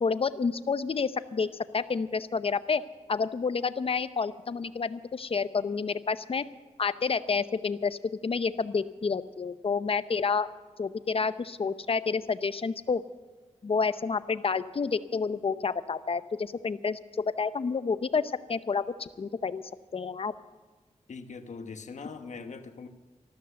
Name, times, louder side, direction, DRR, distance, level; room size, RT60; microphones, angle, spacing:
voice 1, 0.0-6.4 6.8-10.5 10.8-13.0 13.6-19.6 19.9-20.3, left 5 dB, 50° left, 13 dB, 0.7 m, -29 dB
voice 2, 21.1-22.9, left 4 dB, 75° left, 7 dB, 1.1 m, -41 dB
13.5 x 13.0 x 6.7 m, 1.3 s
wide cardioid pair, 100°, 12 cm